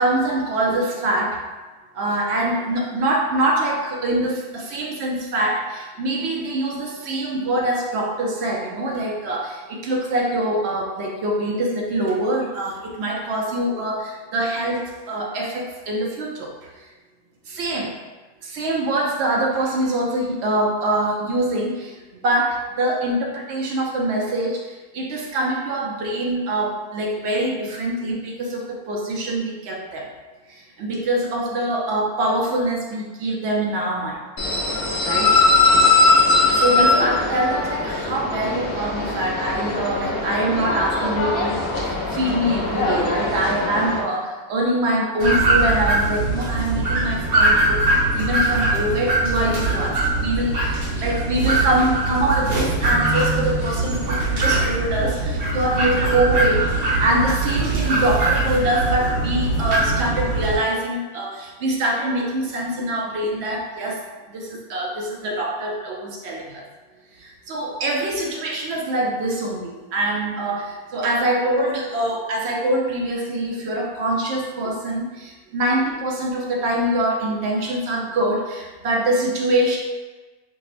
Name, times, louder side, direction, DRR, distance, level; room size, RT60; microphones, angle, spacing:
voice 1, 0.0-1.4 1.9-16.9 17.5-17.9 18.4-30.1 30.5-34.2 35.0-35.3 36.4-64.0 64.3-66.7 67.1-79.8, right 1 dB, 70° right, -1 dB, 0.6 m, -24 dB
sound 1, 34.4-44.0, left 3 dB, 65° left, 0.6 m, -20 dB
sound 2, 45.2-60.6, right 2 dB, 85° right, 1.9 m, -21 dB
5.7 x 2.0 x 2.4 m, 1.3 s
omnidirectional pair, 1.7 m